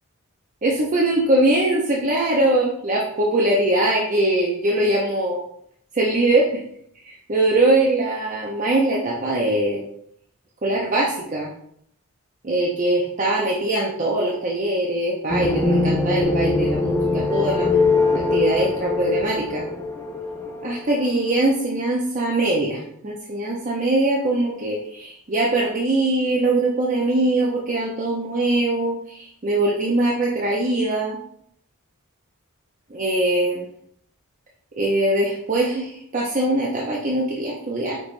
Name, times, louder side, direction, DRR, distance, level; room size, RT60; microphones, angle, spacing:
voice 1, 0.6-5.4 5.9-6.6 7.0-9.8 10.6-11.5 12.4-17.7 18.1-19.6 20.6-31.2 32.9-33.7 34.8-38.0, right 2 dB, 35° right, -3 dB, 0.6 m, -22 dB
sound 1, 15.3-21.1, left 3 dB, 10° left, 0.4 m, -22 dB
5.2 x 3.0 x 3.1 m, 0.69 s
head